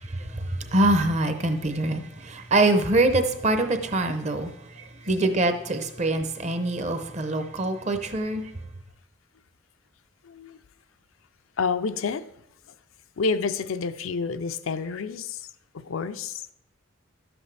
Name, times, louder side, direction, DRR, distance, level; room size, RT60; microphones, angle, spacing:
voice 1, 0.7-4.5 5.1-8.4, right 2 dB, 35° right, 8 dB, 0.7 m, -24 dB
voice 2, 10.2-10.6 11.6-12.2 13.2-15.4 15.7-16.4, left 4 dB, 85° left, 11 dB, 0.5 m, -29 dB
11.5 x 8.0 x 3.3 m, 0.77 s
head